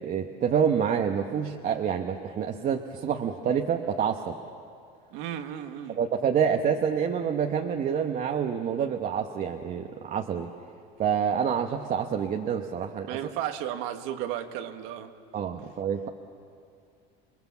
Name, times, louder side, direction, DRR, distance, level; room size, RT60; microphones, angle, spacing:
voice 1, 0.0-4.3 6.0-10.5 11.0-13.2 15.3-16.1, right 7 dB, 40° right, 3 dB, 1.1 m, -27 dB
voice 2, 5.1-6.0 13.1-15.1, right 11 dB, 80° right, 7 dB, 1.6 m, -34 dB
28.5 x 21.0 x 7.1 m, 2.5 s
cardioid pair, 120°, 21 cm